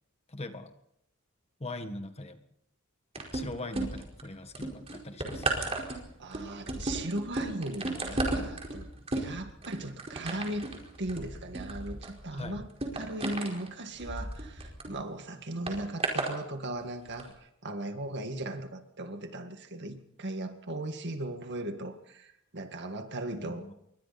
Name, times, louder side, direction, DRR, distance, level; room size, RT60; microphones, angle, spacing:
voice 1, 0.3-0.7 1.6-2.4 3.3-5.5 12.4-12.6 23.3-23.7, left 2 dB, 30° left, 8 dB, 1.7 m, -41 dB
sound 1, 3.2-4.2 4.5-14.9 15.7-16.3 17.1-17.2, right 2 dB, 30° right, 4.8 m, -34 dB
voice 2, 6.2-8.9 9.1-10.7 11.0-12.7 12.9-23.7, right 1 dB, 55° right, 7 dB, 2.1 m, -37 dB
27.5 x 23.0 x 4.3 m, 0.76 s
head